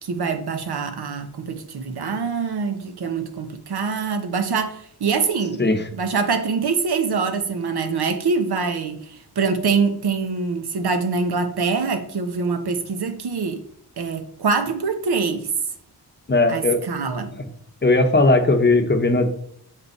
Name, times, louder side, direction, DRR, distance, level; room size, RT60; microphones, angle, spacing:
voice 1, 0.0-5.6 5.9-13.6 14.0-15.5 16.5-17.3, right 5 dB, 75° right, 1.1 m, -24 dB
voice 2, 16.3-16.8 17.4-17.5 17.8-19.3, left 2 dB, 25° left, 0.9 m, -18 dB
6.9 x 5.1 x 4.3 m
wide cardioid pair, 130°, 39 cm